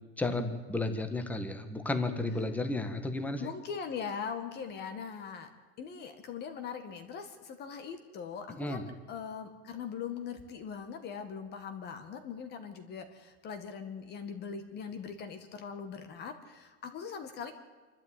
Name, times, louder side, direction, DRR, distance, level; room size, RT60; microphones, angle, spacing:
voice 1, 0.2-3.5 8.5-8.9, left 2 dB, 5° left, 7 dB, 1.5 m, -33 dB
voice 2, 3.4-5.5 5.8-17.5, left 6 dB, 30° left, 7 dB, 1.9 m, -41 dB
27.0 x 12.0 x 9.3 m, 1.3 s
supercardioid pair, 155°, 33 cm